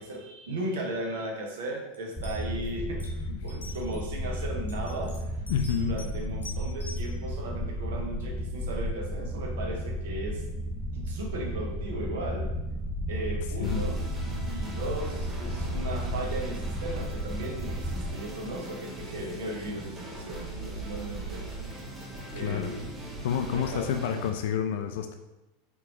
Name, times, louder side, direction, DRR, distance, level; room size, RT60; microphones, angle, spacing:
voice 1, 0.0-5.4 5.8-10.4 10.9-12.5 13.1-14.0 14.4-21.5 22.3-22.9 23.5-23.9, right 1 dB, 60° right, 1 dB, 1.0 m, -36 dB
sound 1, 1.9-2.0 2.2-2.7 3.0-3.1 3.5-4.1 4.7-6.1 6.4-7.1, left 2 dB, 75° left, 1.1 m, -45 dB
sound 2, 2.2-18.1, equal, 5° right, 0.5 m, -33 dB
voice 2, 5.5-6.0 13.6-13.9 22.3-22.8 23.2-25.2, left 8 dB, 60° left, 6 dB, 0.4 m, -29 dB
sound 3, 13.6-24.3, right 2 dB, 20° right, 1.3 m, -40 dB
4.7 x 3.6 x 3.1 m, 1.0 s
figure-of-eight pair, 85°, 0 cm